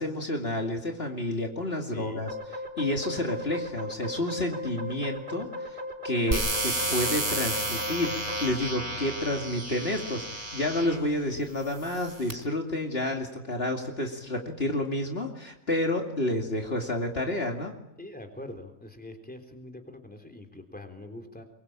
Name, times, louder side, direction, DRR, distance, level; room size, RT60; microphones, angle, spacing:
voice 1, 0.0-2.3 2.8-5.8 6.0-8.1 8.4-17.7, left 1 dB, 50° left, 2 dB, 2.7 m, -30 dB
voice 2, 1.9-2.3 18.0-21.4, left 1 dB, 5° left, 5 dB, 3.6 m, -43 dB
sound 1, 2.3-8.5, left 1 dB, 45° right, 5.7 m, -38 dB
sound 2, 6.3-11.1 11.8-12.3, right 1 dB, 60° right, 4.8 m, -32 dB
25.0 x 23.0 x 8.8 m, 0.81 s
omnidirectional pair, 1.4 m